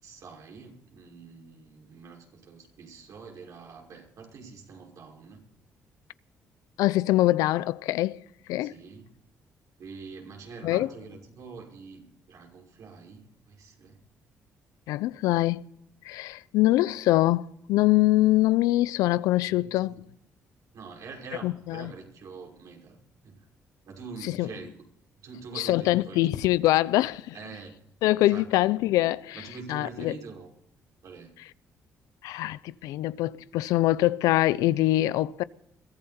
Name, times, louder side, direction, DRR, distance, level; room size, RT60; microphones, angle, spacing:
voice 1, 0.0-5.5 8.6-9.1 9.8-14.0 19.5-20.0 20.7-23.0 23.2-23.5 23.9-24.7 25.2-26.4 27.3-27.7 28.3-28.5 29.3-30.5 31.0-31.3, right 5 dB, 70° right, 5.8 m, -45 dB
voice 2, 6.8-8.2 8.5-8.7 10.6-10.9 14.9-15.6 16.0-19.9 21.4-21.9 24.2-24.5 25.5-27.3 28.0-30.2 31.4-31.5 32.2-35.4, left 16 dB, 85° left, 0.5 m, -24 dB
22.5 x 14.5 x 4.3 m
supercardioid pair, 65°, 6 cm